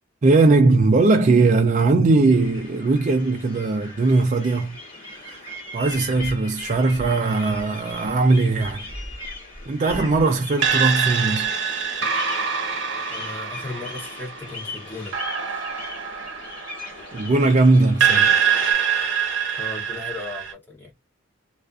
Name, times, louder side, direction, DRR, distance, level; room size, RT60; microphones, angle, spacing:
voice 1, 0.2-4.8 5.2-8.9 9.7-11.5 17.1-18.3, right 3 dB, 40° right, 0.4 m, -19 dB
sound 1, 2.3-18.7, left 2 dB, 30° left, 1.4 m, -39 dB
sound 2, 10.6-17.5 18.0-20.5, right 7 dB, 65° right, 0.8 m, -24 dB
voice 2, 13.1-15.2 19.6-20.9, left 2 dB, 10° left, 0.8 m, -36 dB
2.4 x 2.3 x 2.3 m
head